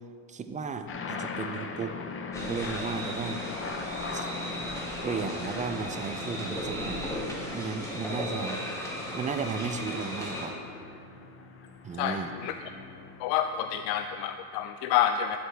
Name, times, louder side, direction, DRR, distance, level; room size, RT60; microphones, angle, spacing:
voice 1, 0.3-2.0 2.4-3.4 4.1-4.3 5.0-7.0 7.5-8.6 9.1-10.5 11.8-12.3, right 5 dB, 20° right, 7 dB, 0.3 m, -34 dB
sound 1, 0.9-14.6, left 4 dB, 25° left, 0.7 m, -41 dB
sound 2, 2.3-10.5, equal, 5° left, 1.9 m, -36 dB
voice 2, 12.0-12.5 13.2-15.4, left 10 dB, 80° left, 8 dB, 0.6 m, -28 dB
12.0 x 7.9 x 3.4 m, 2.2 s
supercardioid pair, 110°, 49 cm